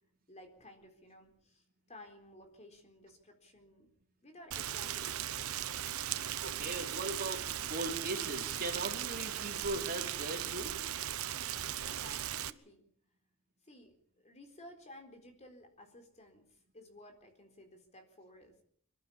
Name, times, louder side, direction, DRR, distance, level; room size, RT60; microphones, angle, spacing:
voice 1, 0.3-3.9 4.2-5.4 11.8-12.8 13.6-18.6, left 1 dB, 30° left, 5 dB, 4.1 m, -55 dB
Rain, 4.5-12.5, right 11 dB, 80° right, 0.9 m, -38 dB
voice 2, 6.4-7.4 7.7-10.8, right 2 dB, 45° right, 1 dB, 4.5 m, -39 dB
26.5 x 12.0 x 8.6 m, 0.63 s
head